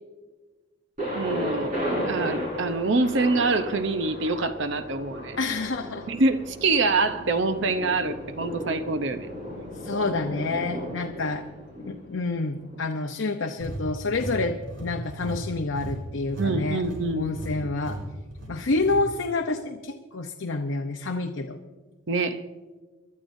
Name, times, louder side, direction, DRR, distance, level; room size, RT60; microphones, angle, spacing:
Thunder, 1.0-12.8, equal, 40° right, 5.1 m, -34 dB
voice 1, 1.1-5.4 6.1-9.3 16.4-17.3 22.1-22.4, right 3 dB, 60° right, 10 dB, 0.7 m, -25 dB
voice 2, 5.4-6.1 9.8-11.4 11.8-16.8 17.1-18.0 18.5-21.6, left 3 dB, 65° left, 3 dB, 0.7 m, -28 dB
sound 1, 13.6-16.5 16.8-17.0 17.3-17.5 17.8-18.0 18.3-19.0, right 1 dB, 75° right, 4.3 m, -36 dB
25.5 x 12.0 x 2.7 m, 1.3 s
head